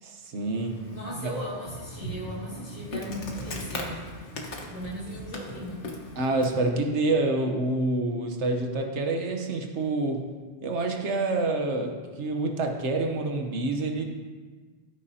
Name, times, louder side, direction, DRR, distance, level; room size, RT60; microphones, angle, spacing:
voice 1, 0.0-0.9 1.2-1.3 6.2-10.3 10.6-14.0, right 2 dB, 80° right, 3 dB, 1.4 m, -27 dB
Insect, 0.5-6.7, left 1 dB, 80° left, 1.6 m, -39 dB
voice 2, 0.9-4.1 4.7-5.8, equal, 10° right, -10 dB, 2.9 m, -37 dB
16.0 x 9.3 x 2.8 m, 1.4 s
omnidirectional pair, 1.2 m